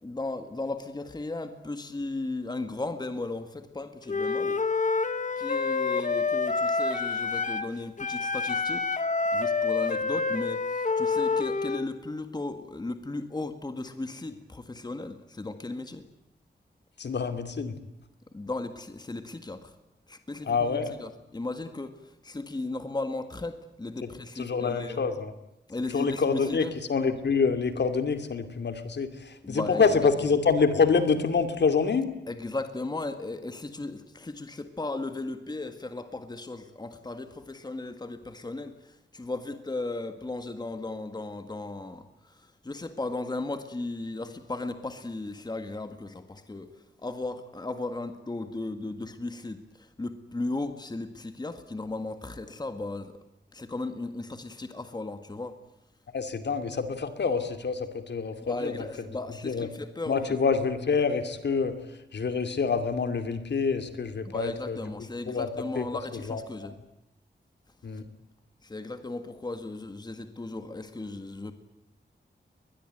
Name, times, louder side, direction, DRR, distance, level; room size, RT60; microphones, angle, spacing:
voice 1, 0.0-4.6 5.4-8.9 9.3-16.1 18.3-19.7 20.1-25.0 25.7-26.7 29.4-29.9 32.3-53.2 53.5-55.6 58.4-60.4 64.2-66.7 68.6-71.5, left 2 dB, 20° left, 9 dB, 1.7 m, -36 dB
Wind instrument woodwind instrument, 4.1-7.7 8.0-11.9, left 4 dB, 45° left, 1.3 m, -27 dB
voice 2, 17.0-17.8 20.4-21.0 24.4-25.3 25.9-32.1 56.1-58.9 59.4-59.7 60.1-61.8 62.1-64.8 65.3-65.9 66.3-66.7 67.8-68.1, left 5 dB, 70° left, 8 dB, 2.6 m, -26 dB
22.5 x 21.0 x 9.1 m, 0.85 s
wide cardioid pair, 155°, 19 cm